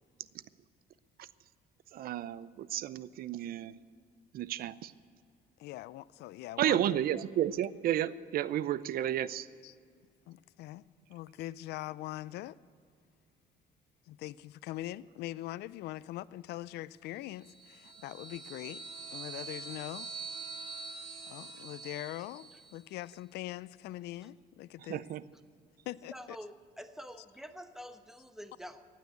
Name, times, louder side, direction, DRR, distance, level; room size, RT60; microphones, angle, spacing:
voice 1, 1.9-3.7 4.3-4.9 6.6-9.5 24.9-25.2, right 11 dB, 60° right, 0.6 m, -32 dB
voice 2, 5.6-7.0 9.6-9.8 10.3-10.8 11.1-12.6 14.1-18.8 19.1-20.1 21.3-25.0 25.9-26.4, left 15 dB, 75° left, 0.4 m, -42 dB
sound 1, 17.4-22.8, right 4 dB, 45° right, 2.4 m, -45 dB
voice 3, 26.1-28.9, equal, ahead, 1.0 m, -47 dB
15.5 x 9.4 x 8.2 m
cardioid pair, 110°, 17 cm